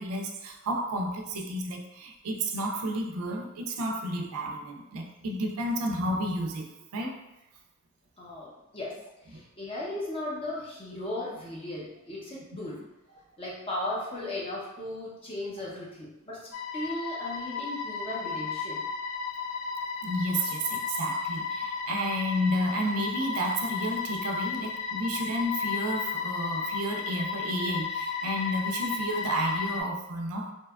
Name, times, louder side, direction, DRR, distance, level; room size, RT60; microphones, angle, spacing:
voice 1, 0.0-7.1 9.3-9.4 20.0-30.5, equal, 75° right, 1 dB, 0.4 m, -31 dB
voice 2, 8.2-9.0 9.3-12.8 13.4-16.4 16.7-18.8, left 1 dB, 25° left, -5 dB, 0.5 m, -36 dB
sound 1, 16.5-29.8, left 5 dB, 70° left, 0.3 m, -33 dB
2.7 x 2.2 x 2.2 m, 0.95 s
head